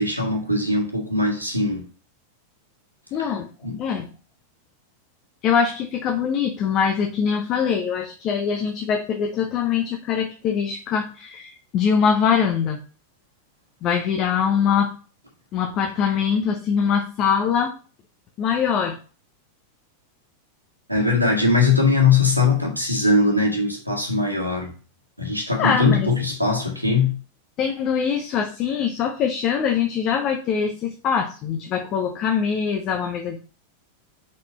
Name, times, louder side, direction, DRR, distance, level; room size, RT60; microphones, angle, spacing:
voice 1, 0.0-1.9 3.2-3.3 3.6-3.8 20.9-24.7 25.2-27.1, left 3 dB, 90° right, 1.5 m, -20 dB
voice 2, 3.1-3.5 3.8-4.1 5.4-12.8 13.8-14.9 15.5-17.7 18.4-19.0 25.6-26.1 27.6-33.4, left 7 dB, 35° left, 0.8 m, -23 dB
5.3 x 4.1 x 4.3 m
figure-of-eight pair, 90°, 0 cm